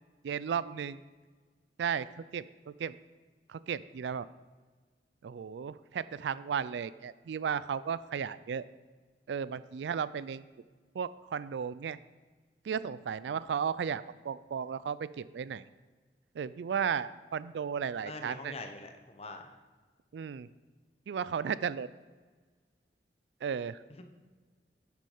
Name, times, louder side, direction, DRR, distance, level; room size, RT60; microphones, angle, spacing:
voice 1, 0.2-1.0 1.8-2.1 2.3-3.0 3.5-4.3 5.2-8.6 9.3-10.4 10.9-12.0 12.6-15.6 16.3-18.5 20.1-20.5 21.1-21.9 23.4-24.0, right 7 dB, 75° right, 17 dB, 0.3 m, -34 dB
voice 2, 18.0-19.5 24.0-24.1, left 2 dB, 35° left, 6 dB, 0.9 m, -44 dB
10.0 x 6.1 x 5.5 m, 1.4 s
head